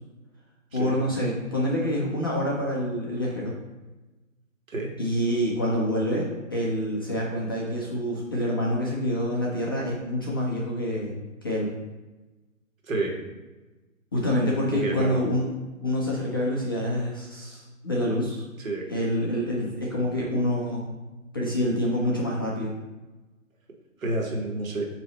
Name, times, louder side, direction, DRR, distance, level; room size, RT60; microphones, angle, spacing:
voice 1, 0.7-3.6 5.0-11.2 11.4-11.8 14.1-15.5 15.8-18.4 18.9-20.9 21.3-22.7, equal, 20° left, -4 dB, 0.4 m, -27 dB
voice 2, 12.8-13.1 14.7-15.2 18.6-18.9 24.0-24.8, right 2 dB, 75° right, 0 dB, 1.6 m, -29 dB
8.2 x 2.9 x 4.0 m, 1.1 s
figure-of-eight pair, 135°, 41 cm